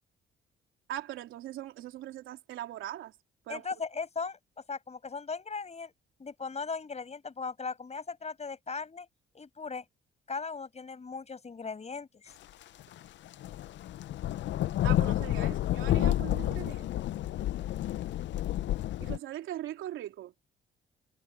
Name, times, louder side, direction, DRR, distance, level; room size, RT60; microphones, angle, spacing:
voice 1, 0.9-3.1 3.5-3.7 14.8-17.0 19.0-20.3, right 13 dB, 85° right, 3.4 m, -40 dB
voice 2, 3.5-4.4 4.7-5.9 6.2-9.1 9.3-9.8 10.3-12.3, left 4 dB, 35° left, 6.9 m, -38 dB
sound 1, 12.8-13.0 13.3-19.2, left 13 dB, 65° left, 0.5 m, -30 dB
cardioid pair, 90°, 20 cm